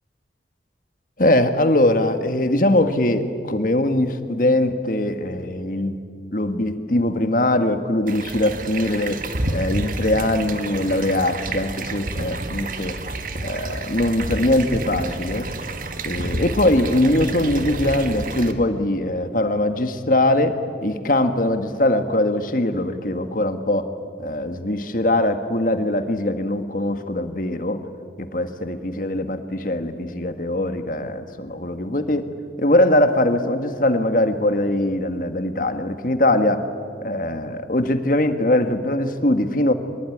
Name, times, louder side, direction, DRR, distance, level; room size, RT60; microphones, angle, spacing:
voice 1, 1.2-6.0 6.3-9.2 9.5-13.0 13.4-15.5 16.0-20.6 20.8-23.9 24.2-27.8 28.2-32.3 32.6-36.6 37.0-39.7, left 1 dB, 50° left, 8 dB, 1.7 m, -21 dB
sound 1, 8.1-18.5, right 2 dB, 45° right, 1.7 m, -29 dB
25.0 x 21.5 x 10.0 m, 2.3 s
head